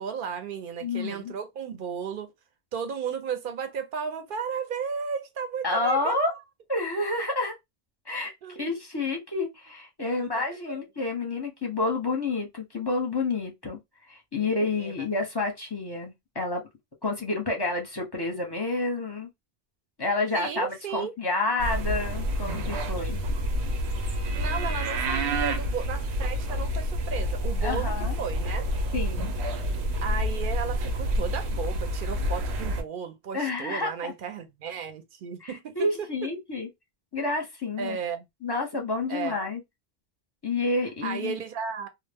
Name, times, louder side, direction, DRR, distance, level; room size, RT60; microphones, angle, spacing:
voice 1, 0.0-2.3 2.7-6.4 8.4-8.7 10.0-10.3 10.7-10.9 14.4-14.9 20.3-21.1 23.7-23.8 24.4-28.7 30.0-36.3 37.8-38.3 39.1-39.3 41.0-41.9, right 6 dB, 60° right, 0.7 m, -34 dB
voice 2, 0.8-1.3 5.6-6.3 6.7-7.5 8.1-13.8 14.1-16.6 17.0-19.3 20.0-23.2 27.6-28.2 28.9-29.3 33.3-34.1 35.4-36.7 37.1-38.0 38.4-39.6 40.4-41.4, left 3 dB, 25° left, 0.6 m, -29 dB
sound 1, 21.6-32.8, equal, 90° right, 0.9 m, -28 dB
2.0 x 2.0 x 3.3 m
omnidirectional pair, 1.1 m